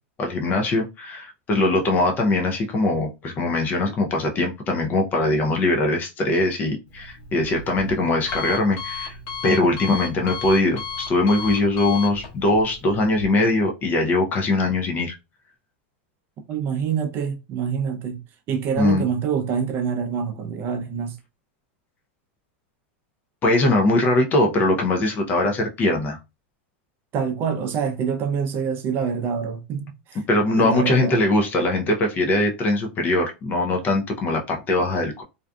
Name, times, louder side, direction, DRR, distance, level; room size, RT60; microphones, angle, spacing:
voice 1, 0.2-9.2 9.4-15.1 18.8-19.0 23.4-26.2 30.3-35.2, left 2 dB, 30° left, 0.5 m, -21 dB
Alarm, 6.9-13.3, left 4 dB, 55° left, 1.0 m, -35 dB
voice 2, 16.5-18.2 18.5-21.2 27.1-30.2 30.6-31.2, right 7 dB, 35° right, 0.6 m, -26 dB
2.6 x 2.3 x 2.3 m
supercardioid pair, 130°, 6 cm